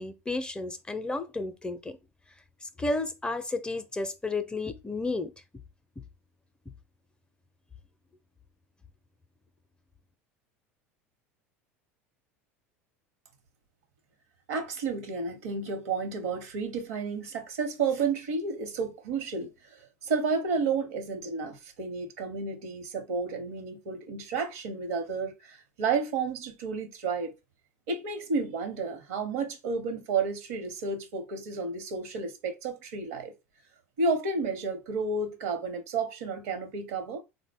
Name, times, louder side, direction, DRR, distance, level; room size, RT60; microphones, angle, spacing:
voice 1, 0.0-2.0 2.6-5.3, left 2 dB, 10° left, 0.5 m, -32 dB
voice 2, 14.5-19.5 20.0-27.3 27.9-33.3 34.0-37.2, right 4 dB, 70° right, 0.9 m, -31 dB
3.6 x 2.1 x 3.4 m
hypercardioid pair, 80°, 8 cm